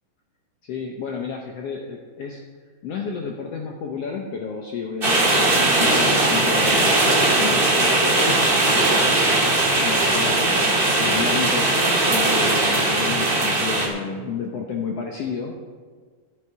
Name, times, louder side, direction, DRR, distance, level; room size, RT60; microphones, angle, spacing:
voice 1, 0.6-2.4 2.8-9.2 9.8-10.5 11.0-15.5, left 5 dB, 65° left, 1 dB, 1.7 m, -31 dB
sound 1, 5.0-13.9, right 2 dB, 25° right, 1.4 m, -19 dB
13.0 x 9.6 x 4.8 m, 1.6 s
omnidirectional pair, 3.6 m